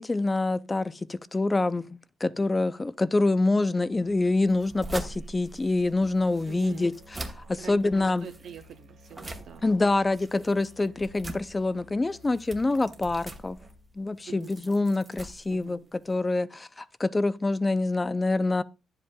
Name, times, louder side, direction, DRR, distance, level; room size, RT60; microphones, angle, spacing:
voice 1, 0.0-6.9 7.4-8.3 9.6-13.6 14.0-15.8 16.1-18.6, left 2 dB, 20° left, 0.3 m, -26 dB
Musical instrument, 3.9-14.1, left 1 dB, 50° right, 1.5 m, -55 dB
sound 1, 4.5-16.2, right 1 dB, 20° right, 1.0 m, -43 dB
voice 2, 6.5-6.9 7.6-9.9 14.3-14.6 15.5-15.9, right 7 dB, 70° right, 0.7 m, -45 dB
10.5 x 7.7 x 2.2 m
cardioid pair, 90°, 0 cm